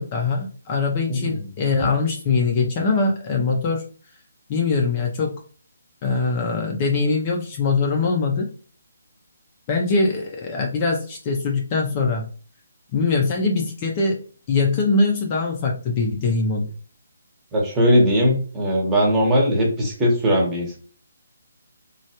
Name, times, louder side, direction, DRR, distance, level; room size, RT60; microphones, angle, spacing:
voice 1, 0.0-3.8 4.5-5.3 6.0-8.5 9.7-12.3 12.9-14.2 14.5-16.7, left 4 dB, 30° left, 1 dB, 0.6 m, -22 dB
voice 2, 1.1-1.6 17.5-20.8, equal, 15° right, -1 dB, 1.0 m, -19 dB
3.2 x 2.3 x 2.8 m, 0.40 s
figure-of-eight pair, 150°, 0 cm